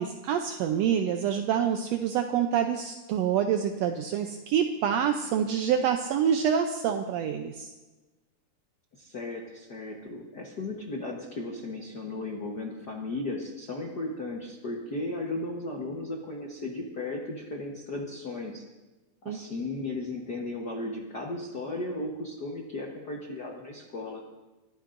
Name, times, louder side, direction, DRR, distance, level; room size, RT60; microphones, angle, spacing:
voice 1, 0.0-7.7 19.3-19.4, right 8 dB, 80° right, 5 dB, 1.5 m, -27 dB
voice 2, 8.9-18.7 19.2-24.2, left 2 dB, 65° left, 0 dB, 0.9 m, -35 dB
22.5 x 14.0 x 2.6 m, 1.1 s
omnidirectional pair, 3.6 m